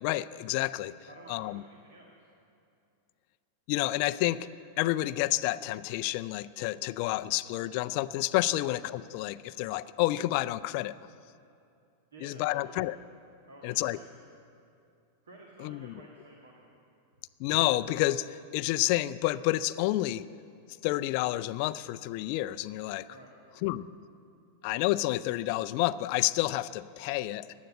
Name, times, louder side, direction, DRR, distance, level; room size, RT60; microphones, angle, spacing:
voice 1, 0.0-0.9 1.3-1.6 3.7-4.5 4.8-11.0 12.2-13.0 13.6-14.0 15.6-15.9 17.4-20.3 20.8-23.1 23.6-23.9 24.6-27.5, left 17 dB, 45° left, 15 dB, 0.4 m, -29 dB
voice 2, 1.1-2.3 8.5-8.7 12.1-12.9 13.5-14.1 15.2-16.7 23.1-23.4, right 2 dB, 65° right, 0 dB, 2.0 m, -52 dB
17.0 x 11.0 x 7.8 m, 2.5 s
figure-of-eight pair, 90°, 0 cm